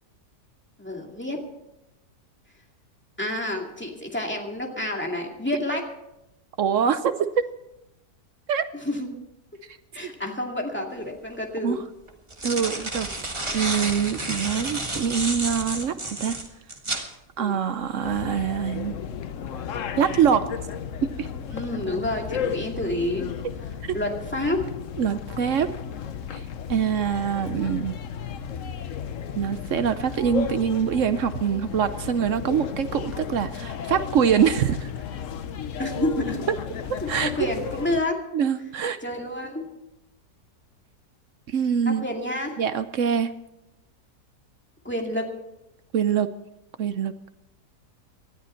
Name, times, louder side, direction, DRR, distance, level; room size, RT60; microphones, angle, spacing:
voice 1, 0.8-1.4 3.2-5.8 8.8-9.1 9.9-11.8 17.4-17.6 21.5-23.3 23.9-24.6 35.8-36.4 37.2-38.2 39.0-39.7 41.9-42.6 44.8-45.2, left 1 dB, 5° left, 0 dB, 2.2 m, -29 dB
voice 2, 6.6-7.5 8.5-8.7 11.6-11.8 12.4-16.4 17.4-18.9 20.0-20.5 21.2-21.3 25.0-25.7 26.3-26.4 26.7-28.0 29.3-34.9 36.9-37.3 38.3-39.0 41.5-42.1 42.6-43.3 45.9-46.3 46.8-47.1, right 7 dB, 60° right, 11 dB, 0.8 m, -24 dB
Ripping a sheet of paper in half, 11.0-11.1 12.1-17.1, right 2 dB, 20° right, 1.6 m, -30 dB
sound 1, 18.0-38.0, left 7 dB, 60° left, 1.0 m, -34 dB
19.0 x 13.0 x 4.4 m, 0.88 s
omnidirectional pair, 1.8 m